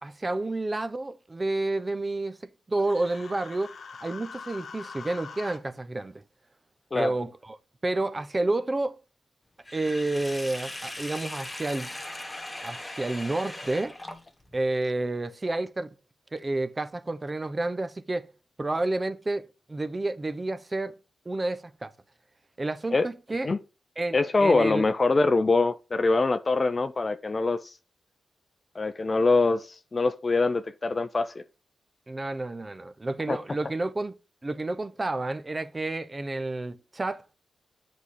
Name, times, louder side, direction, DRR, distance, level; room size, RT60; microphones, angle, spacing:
voice 1, 0.0-3.7 4.0-6.2 6.9-7.6 7.8-9.0 9.7-11.9 12.6-14.0 14.5-15.9 16.3-18.3 18.6-21.0 21.3-21.9 22.6-23.5 24.0-24.9 32.1-34.1 34.4-37.4, right 2 dB, 30° right, 0.8 m, -30 dB
Human voice, 2.8-5.6, left 5 dB, 65° left, 1.0 m, -43 dB
Sink (filling or washing), 9.6-14.6, left 1 dB, 15° left, 1.3 m, -39 dB
voice 2, 24.1-27.7 28.8-31.4 33.3-33.4, left 3 dB, 40° left, 0.5 m, -24 dB
8.1 x 4.2 x 4.9 m
supercardioid pair, 40°, 0 cm